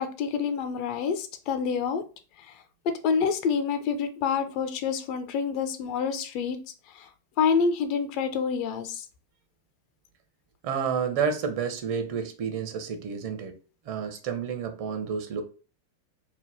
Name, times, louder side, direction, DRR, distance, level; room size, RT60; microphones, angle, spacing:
voice 1, 0.0-2.0 3.0-6.6 6.9-7.1 7.4-9.1, left 6 dB, 45° left, 0.4 m, -27 dB
voice 2, 10.6-13.5 13.8-15.4, right 6 dB, 45° right, 0.6 m, -30 dB
2.8 x 2.1 x 3.3 m
figure-of-eight pair, 90°, 0 cm